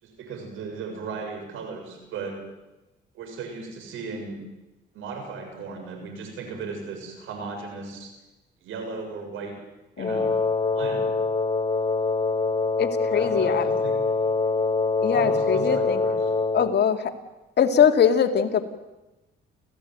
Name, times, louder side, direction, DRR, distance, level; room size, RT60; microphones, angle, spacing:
voice 1, 0.0-2.4 3.1-4.4 4.9-8.1 8.6-9.6 10.0-10.3 10.7-11.0 13.1-14.0 15.1-16.3, right 4 dB, 85° right, 4 dB, 7.0 m, -36 dB
voice 2, 10.0-10.3 12.8-13.7 15.0-16.0 16.5-17.1 17.6-18.6, left 7 dB, 60° left, 6 dB, 2.4 m, -22 dB
Wind instrument woodwind instrument, 10.0-16.8, left 3 dB, 25° left, 1.3 m, -24 dB
29.5 x 15.5 x 9.3 m, 1.0 s
cardioid pair, 90°, 20 cm